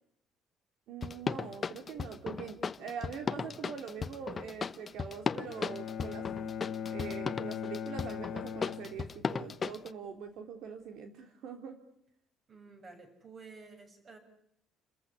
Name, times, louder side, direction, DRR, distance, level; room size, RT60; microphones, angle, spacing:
voice 1, 0.9-6.5 6.9-11.8, right 6 dB, 60° right, 5 dB, 3.1 m, -43 dB
sound 1, 1.0-9.9, left 5 dB, 25° left, 1.0 m, -36 dB
Bowed string instrument, 5.5-9.6, left 7 dB, 55° left, 2.2 m, -40 dB
voice 2, 12.5-14.2, right 4 dB, 30° right, 6 dB, 7.4 m, -52 dB
30.0 x 15.0 x 10.0 m, 0.74 s
cardioid pair, 145°, 0 cm